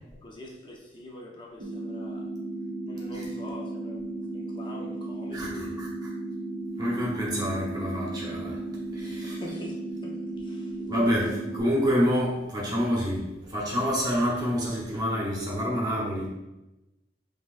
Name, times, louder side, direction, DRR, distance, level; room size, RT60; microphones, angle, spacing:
voice 1, 0.1-2.3 2.8-5.8 9.2-10.9, left 1 dB, 30° left, -1 dB, 0.7 m, -44 dB
sound 1, 1.6-11.6, right 2 dB, 85° right, 0.7 m, -35 dB
voice 2, 5.3-5.9 6.8-8.6 8.9-9.4 10.8-16.3, equal, 25° right, -4 dB, 1.0 m, -27 dB
5.9 x 3.5 x 2.5 m, 0.99 s
head